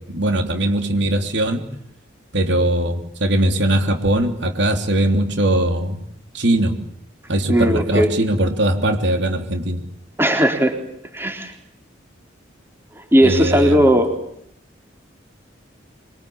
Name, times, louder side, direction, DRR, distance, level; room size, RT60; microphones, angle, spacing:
voice 1, 0.0-1.6 2.3-6.0 6.3-6.7 7.3-9.8 13.2-13.9, right 1 dB, 70° right, 5 dB, 3.3 m, -20 dB
voice 2, 7.5-8.1 10.2-10.7 11.1-11.5 13.0-14.1, equal, 10° right, 4 dB, 3.7 m, -17 dB
27.0 x 23.0 x 8.7 m, 0.72 s
head